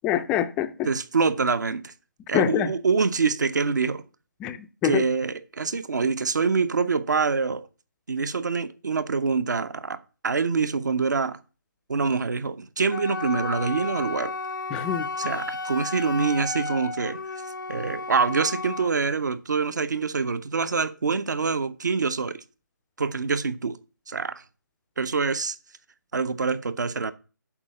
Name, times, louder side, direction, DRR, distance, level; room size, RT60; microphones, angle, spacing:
voice 1, 0.0-0.9 2.3-2.7 4.4-5.0 14.7-15.1, left 11 dB, 10° left, 0.3 m, -25 dB
voice 2, 0.9-1.9 2.3-4.0 4.8-7.6 8.1-11.4 11.9-14.3 15.2-17.2 17.7-22.4 23.0-23.8 24.1-24.4 25.0-25.6 26.1-27.1, right 4 dB, 60° right, 0.8 m, -25 dB
Wind instrument woodwind instrument, 12.9-18.9, left 3 dB, 75° left, 0.6 m, -33 dB
7.3 x 4.9 x 6.6 m
figure-of-eight pair, 150°, 11 cm